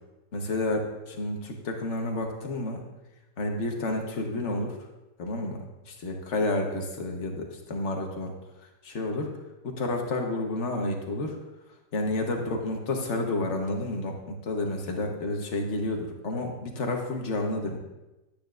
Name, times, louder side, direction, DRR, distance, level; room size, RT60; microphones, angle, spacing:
voice 1, 0.3-2.8 3.4-4.8 5.2-8.3 8.8-9.3 9.6-11.4 11.9-17.8, left 2 dB, 45° left, 2 dB, 1.4 m, -30 dB
12.0 x 9.2 x 2.5 m, 1.0 s
omnidirectional pair, 1.8 m